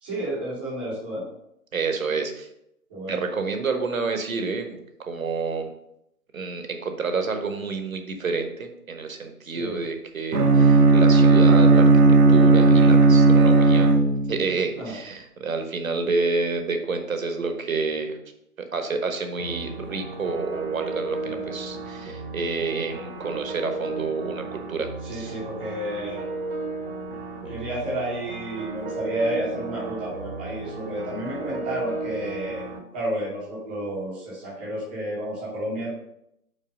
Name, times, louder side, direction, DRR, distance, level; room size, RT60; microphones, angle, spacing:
voice 1, 0.0-1.3 2.9-3.2 9.5-9.8 14.7-15.0 21.3-21.5 25.0-26.2 27.4-32.6 32.9-35.9, right 1 dB, 5° right, -7 dB, 0.7 m, -31 dB
voice 2, 1.7-2.5 3.1-5.7 6.3-11.9 12.3-13.9 14.3-18.2 18.6-25.4, right 4 dB, 60° right, 6 dB, 1.1 m, -29 dB
Bowed string instrument, 10.3-14.5, right 3 dB, 85° right, 0.9 m, -15 dB
sound 1, 19.4-32.8, right 3 dB, 40° right, 0.9 m, -34 dB
5.6 x 4.3 x 4.9 m, 0.80 s
figure-of-eight pair, 145°, 45 cm